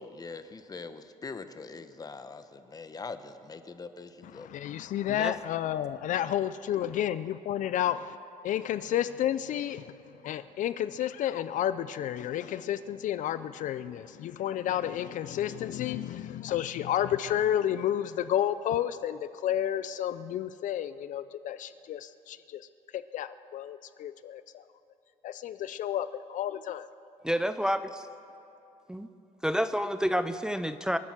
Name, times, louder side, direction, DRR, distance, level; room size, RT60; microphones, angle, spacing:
voice 1, 0.0-4.5, left 4 dB, 25° left, 10 dB, 0.9 m, -43 dB
voice 2, 4.2-8.2 8.4-24.6 25.2-26.9, left 11 dB, 60° left, 14 dB, 0.4 m, -31 dB
voice 3, 27.2-27.8 28.9-29.1 29.4-31.0, equal, 5° right, 10 dB, 0.5 m, -28 dB
26.0 x 9.0 x 5.9 m, 2.8 s
cardioid pair, 105°, 15 cm